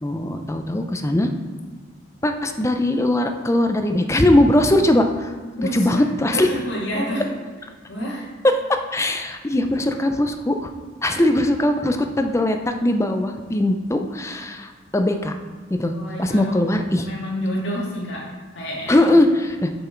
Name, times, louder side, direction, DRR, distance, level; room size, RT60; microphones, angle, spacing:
voice 1, 0.0-1.3 2.2-5.3 5.7-6.5 8.7-10.7 11.0-15.3 15.7-15.9 16.2-17.1 18.9-19.7, left 1 dB, 15° left, 6 dB, 0.5 m, -20 dB
voice 2, 5.5-7.3 7.9-8.3 11.1-11.2 15.9-16.6 17.0-19.2, equal, 60° left, -5 dB, 2.4 m, -29 dB
6.9 x 6.0 x 4.5 m, 1.5 s
head